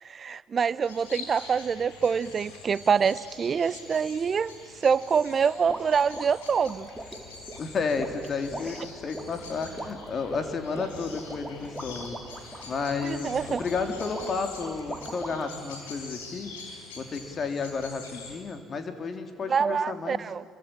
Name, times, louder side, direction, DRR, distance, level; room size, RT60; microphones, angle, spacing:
voice 1, 0.0-4.5 4.8-6.9 13.0-13.6 19.5-20.4, right 6 dB, 45° right, 18 dB, 0.9 m, -25 dB
sound 1, 0.8-18.3, left 4 dB, 85° left, 4.8 m, -45 dB
sound 2, 5.7-15.6, right 1 dB, ahead, 3.8 m, -40 dB
voice 2, 7.6-12.2 12.6-16.5 16.9-20.2, left 4 dB, 45° left, 7 dB, 3.3 m, -32 dB
27.0 x 23.5 x 8.9 m, 2.1 s
hypercardioid pair, 55°, 0 cm